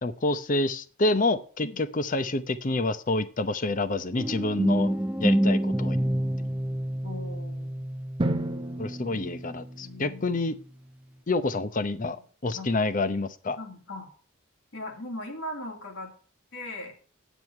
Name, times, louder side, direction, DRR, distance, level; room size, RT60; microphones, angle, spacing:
voice 1, 0.0-4.9 5.2-6.0 6.4-6.5 8.8-10.6 11.3-12.2 12.4-13.6, left 2 dB, 40° left, 14 dB, 0.7 m, -28 dB
sound 1, 4.2-10.0, right 1 dB, 5° right, 0.4 m, -28 dB
voice 2, 7.0-8.0 9.1-10.2 12.5-12.7 13.6-14.1 14.7-16.1 16.5-16.9, left 1 dB, 65° left, 0 dB, 2.5 m, -39 dB
Drum, 8.2-10.1, right 1 dB, 25° right, 0.8 m, -32 dB
9.1 x 8.2 x 4.4 m, 0.38 s
head